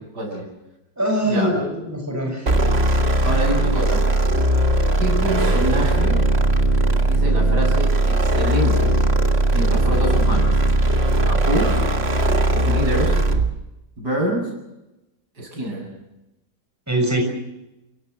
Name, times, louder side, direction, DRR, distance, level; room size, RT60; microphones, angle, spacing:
voice 1, 0.1-0.5 1.2-1.5 3.2-4.1 5.0-6.2 6.8-8.9 9.5-10.5 11.2-11.8 12.5-13.2 14.0-14.5 15.4-15.9, right 1 dB, 90° right, 1 dB, 8.3 m, -26 dB
voice 2, 1.0-2.5 16.9-17.2, right 1 dB, 10° right, 2 dB, 6.7 m, -22 dB
sound 1, 2.5-13.5, right 1 dB, 40° right, 1.9 m, -18 dB
29.5 x 18.0 x 6.7 m, 0.95 s
omnidirectional pair, 1.8 m